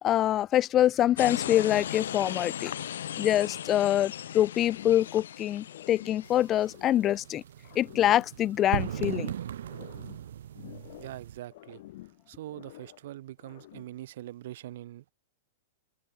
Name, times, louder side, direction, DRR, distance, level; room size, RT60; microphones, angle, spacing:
voice 1, 0.0-2.7 3.2-7.4 7.8-9.3, left 12 dB, 25° left, 0.4 m, -25 dB
sound 1, 1.2-6.7, left 10 dB, 85° left, 0.9 m, -37 dB
sound 2, 4.7-5.4 5.6-7.3 7.6-9.3 9.6-11.2 11.5-13.1 13.4-14.0, left 16 dB, 55° left, 2.5 m, -49 dB
sound 3, 6.2-11.4, right 10 dB, 80° right, 0.4 m, -38 dB
voice 2, 11.0-15.1, right 14 dB, 60° right, 2.6 m, -43 dB
supercardioid pair, 150°, 0 cm